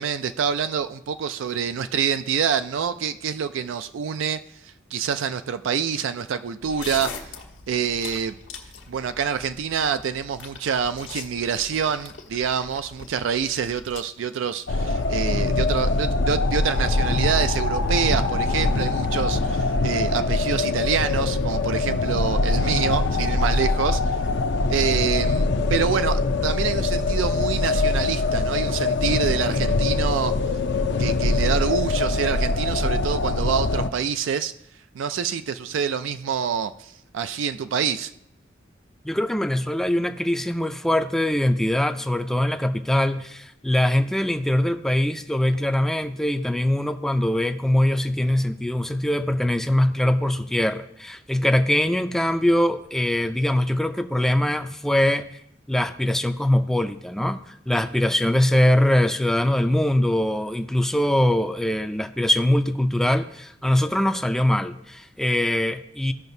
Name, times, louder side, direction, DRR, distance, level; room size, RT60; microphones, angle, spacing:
voice 1, 0.0-7.3 7.7-8.4 8.9-24.2 24.7-30.3 31.0-34.5 34.9-38.1, right 7 dB, 85° right, 11 dB, 0.4 m, -26 dB
sound 1, 6.6-14.0, left 5 dB, 85° left, 1.3 m, -41 dB
sound 2, 14.7-33.9, left 3 dB, 65° left, 0.5 m, -23 dB
voice 2, 39.0-55.4 55.7-66.1, left 1 dB, ahead, 8 dB, 0.4 m, -22 dB
15.5 x 5.7 x 2.7 m, 0.75 s
head